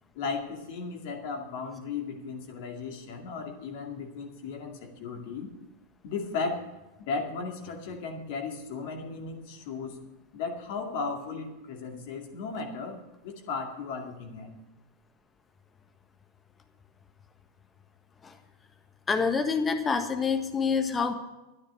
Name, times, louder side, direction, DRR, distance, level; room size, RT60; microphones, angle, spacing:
voice 1, 0.1-5.5 6.0-6.6 7.0-10.0 10.3-14.5, left 4 dB, 50° left, 2 dB, 2.3 m, -36 dB
voice 2, 19.1-21.1, left 5 dB, 15° left, 6 dB, 1.5 m, -27 dB
13.0 x 10.0 x 6.5 m, 1.0 s
figure-of-eight pair, 90°, 0 cm